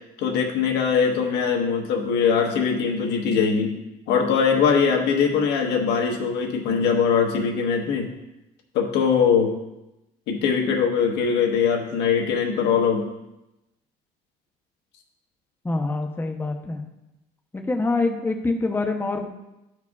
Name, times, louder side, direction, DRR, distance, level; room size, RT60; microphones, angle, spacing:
voice 1, 0.2-3.7 4.1-8.1 8.7-9.5 10.3-13.1, left 6 dB, 90° left, 2 dB, 1.3 m, -21 dB
voice 2, 15.6-16.8 17.5-19.3, left 3 dB, 15° left, 3 dB, 0.8 m, -25 dB
13.5 x 4.7 x 2.4 m, 0.92 s
cardioid pair, 110°, 17 cm